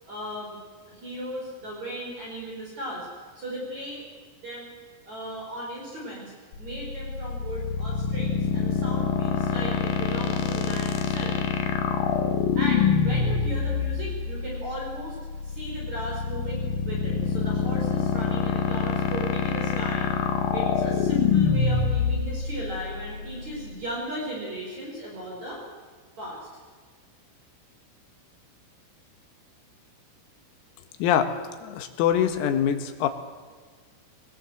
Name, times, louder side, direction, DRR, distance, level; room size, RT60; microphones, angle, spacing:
voice 1, 0.1-0.6 0.9-4.1 4.4-4.7 5.1-6.3 6.6-11.4 12.5-15.2 15.4-20.1 20.5-25.6 26.2-26.4, right 1 dB, 35° right, -2 dB, 5.5 m, -36 dB
sound 1, 6.5-23.7, left 6 dB, 65° left, 2.5 m, -26 dB
voice 2, 31.0-31.3 31.6-33.1, left 9 dB, 85° left, 8 dB, 4.3 m, -24 dB
22.5 x 20.5 x 7.8 m, 1.5 s
omnidirectional pair, 6.0 m